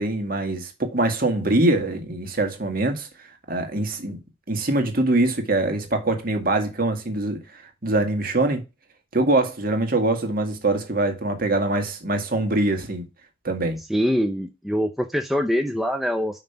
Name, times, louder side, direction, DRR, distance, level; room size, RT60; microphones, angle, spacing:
voice 1, 0.0-3.1 3.5-4.2 4.5-7.4 7.8-8.6 9.1-13.0 13.4-13.8, right 2 dB, 45° right, 2.0 m, -23 dB
voice 2, 13.9-16.4, equal, ahead, 0.6 m, -24 dB
5.8 x 5.2 x 5.7 m
head